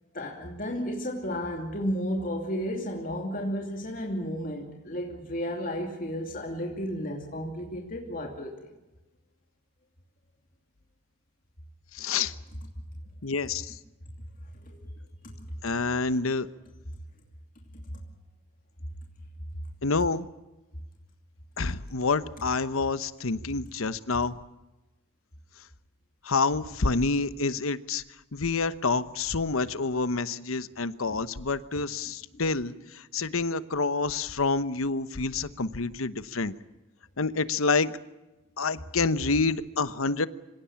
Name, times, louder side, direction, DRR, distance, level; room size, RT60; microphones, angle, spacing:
voice 1, 0.1-8.6 14.6-14.8 15.2-15.4 15.8-15.9 31.1-31.2, equal, 40° left, 1 dB, 2.8 m, -33 dB
voice 2, 11.9-12.3 13.2-13.8 15.6-16.5 19.8-20.3 21.6-24.4 26.2-28.0 28.3-36.5 37.2-38.0 38.6-40.3, left 4 dB, 80° left, 14 dB, 1.0 m, -28 dB
26.0 x 17.5 x 8.7 m, 1.1 s
head